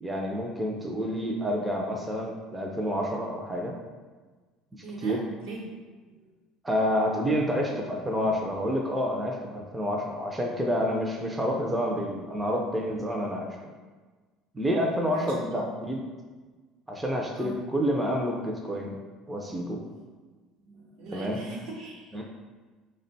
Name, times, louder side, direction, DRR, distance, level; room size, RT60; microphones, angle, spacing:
voice 1, 0.0-3.7 5.0-5.2 6.6-13.5 14.5-16.0 16.9-19.0 19.3-19.8 21.1-21.4 22.1-22.2, equal, 10° right, -1 dB, 0.3 m, -28 dB
voice 2, 4.8-5.7 6.2-6.3 15.1-15.6 17.3-17.6 20.6-22.2, right 2 dB, 75° right, -2 dB, 0.9 m, -40 dB
3.5 x 2.1 x 3.9 m, 1.3 s
cardioid pair, 160°, 0 cm